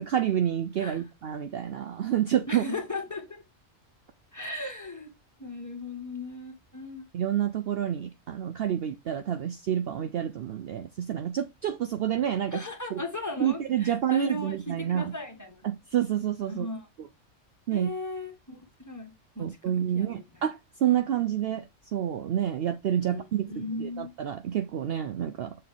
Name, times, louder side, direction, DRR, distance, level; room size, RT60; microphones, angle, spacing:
voice 1, 0.0-2.6 7.1-12.7 12.9-13.0 13.4-15.1 15.6-16.7 17.0-17.1 17.7-17.9 19.4-25.6, right 10 dB, 60° right, 0.7 m, -28 dB
voice 2, 2.5-3.4 4.3-5.1 5.4-7.0 12.5-15.6 16.5-16.8 17.7-18.6 18.9-20.2 23.0-24.1, left 2 dB, 15° left, 1.5 m, -37 dB
6.6 x 4.1 x 3.6 m
omnidirectional pair, 1.3 m